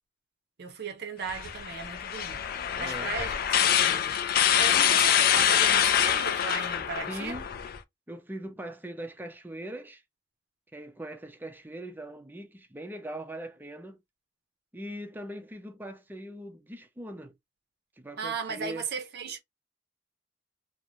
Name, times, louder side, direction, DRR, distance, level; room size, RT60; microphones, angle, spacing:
voice 1, 0.6-7.4 18.2-19.4, right 5 dB, 60° right, 0.5 m, -37 dB
sound 1, 1.3-7.8, left 9 dB, 55° left, 0.3 m, -25 dB
voice 2, 2.8-3.1 7.1-7.5 8.1-10.0 10.7-14.0 14.7-17.3 18.0-18.8, right 1 dB, 10° right, 0.5 m, -41 dB
2.5 x 2.0 x 3.0 m
head